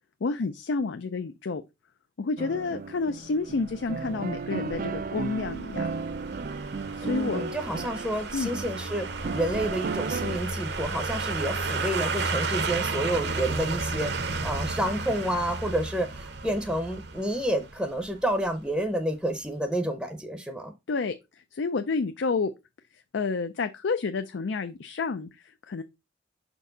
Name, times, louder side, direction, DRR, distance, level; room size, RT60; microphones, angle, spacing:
voice 1, 0.2-1.6 2.2-5.9 6.9-7.4 8.3-8.5 20.9-21.1 21.5-22.5 23.1-25.8, left 4 dB, 85° left, 0.5 m, -29 dB
sound 1, 2.4-10.4, right 4 dB, 50° right, 0.4 m, -35 dB
sound 2, 3.6-18.6 18.9-19.0, right 3 dB, 70° right, 0.9 m, -33 dB
voice 2, 7.0-20.7, right 1 dB, 5° right, 0.6 m, -29 dB
6.1 x 4.5 x 3.8 m
head